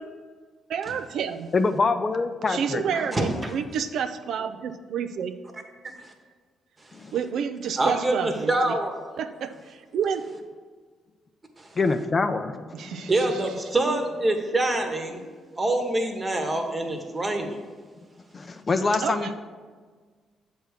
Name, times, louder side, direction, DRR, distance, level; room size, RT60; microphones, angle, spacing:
voice 1, 0.7-1.5 2.5-5.4 7.1-8.8 9.2-10.3 12.7-13.4 13.9-14.0 19.0-19.3, right 7 dB, 70° right, 9 dB, 0.3 m, -30 dB
voice 2, 1.5-3.1 6.9-7.1 11.8-13.1 18.3-19.3, left 3 dB, 35° left, 9 dB, 0.4 m, -25 dB
voice 3, 3.1-3.5 6.0-6.1 7.8-8.9 11.6-11.7 13.1-15.2 15.6-17.6, right 1 dB, 25° right, 4 dB, 1.1 m, -25 dB
7.6 x 3.4 x 6.5 m, 1.5 s
cardioid pair, 90°, 0 cm